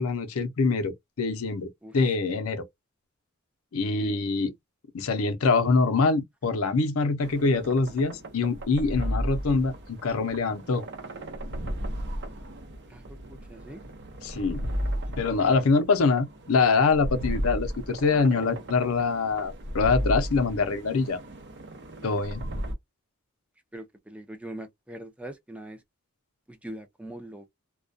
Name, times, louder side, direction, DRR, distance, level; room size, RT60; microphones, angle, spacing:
voice 1, 0.0-2.6 3.7-4.5 4.9-10.8 14.2-14.7 15.2-21.2 22.0-22.4, left 4 dB, 80° left, 0.6 m, -24 dB
voice 2, 1.8-2.2 4.0-4.2 12.9-13.8 23.7-25.8 26.5-27.5, right 1 dB, 5° right, 0.4 m, -42 dB
sound 1, 7.2-22.7, equal, 55° right, 0.7 m, -35 dB
2.2 x 2.2 x 2.5 m
head